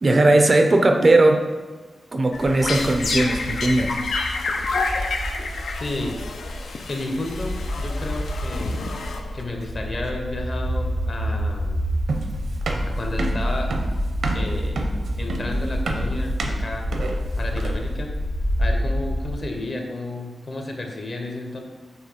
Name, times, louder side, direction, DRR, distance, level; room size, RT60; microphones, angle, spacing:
voice 1, 0.0-1.4 2.1-4.0, right 2 dB, 30° right, 5 dB, 0.4 m, -18 dB
sound 1, 2.3-9.6, left 3 dB, 90° left, 0.5 m, -29 dB
sound 2, 2.3-19.3, equal, 70° left, 1.2 m, -28 dB
voice 2, 5.8-6.2 6.9-8.8 9.3-11.8 12.8-13.7 14.3-16.9 17.4-18.1 18.6-21.6, left 2 dB, 40° left, 2 dB, 0.8 m, -32 dB
sound 3, 12.1-17.9, right 3 dB, 70° right, 0.7 m, -29 dB
6.3 x 3.1 x 4.9 m, 1.3 s
wide cardioid pair, 170°, 0 cm